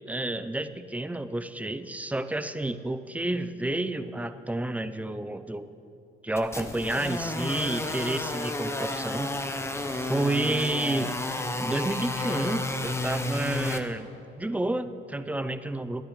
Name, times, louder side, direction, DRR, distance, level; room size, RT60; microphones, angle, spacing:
voice 1, 0.1-5.7 6.2-9.5 9.9-11.2 11.6-14.1 14.4-16.0, right 1 dB, 5° right, 11 dB, 0.5 m, -30 dB
sound 1, 6.4-13.8, left 2 dB, 15° left, 0.9 m, -31 dB
23.5 x 9.6 x 3.2 m, 2.8 s
cardioid pair, 90°, 20 cm